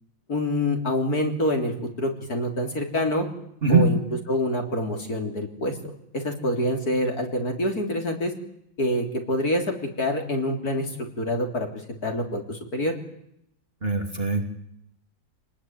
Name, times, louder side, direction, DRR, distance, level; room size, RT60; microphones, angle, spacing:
voice 1, 0.3-3.3 3.7-4.0 4.3-5.8 6.1-8.3 8.8-9.7 10.0-10.9 11.2-11.7 12.0-12.9, left 1 dB, 50° left, 3 dB, 3.9 m, -26 dB
voice 2, 13.8-14.5, right 3 dB, 30° right, 3 dB, 3.2 m, -21 dB
28.0 x 20.0 x 9.4 m, 0.76 s
omnidirectional pair, 2.1 m